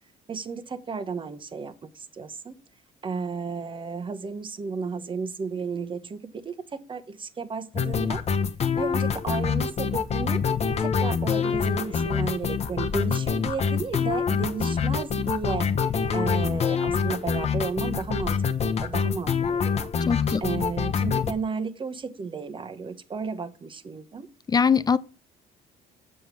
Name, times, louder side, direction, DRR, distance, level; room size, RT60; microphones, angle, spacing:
voice 1, 0.3-2.6 3.0-8.2 8.8-10.4 10.8-19.9 20.4-24.3, right 5 dB, 30° right, 1.1 m, -33 dB
sound 1, 7.7-21.3, left 6 dB, 40° left, 0.9 m, -25 dB
voice 2, 20.1-20.4 24.5-25.0, left 6 dB, 25° left, 0.5 m, -21 dB
7.6 x 6.9 x 5.9 m
cardioid pair, 110°, 17 cm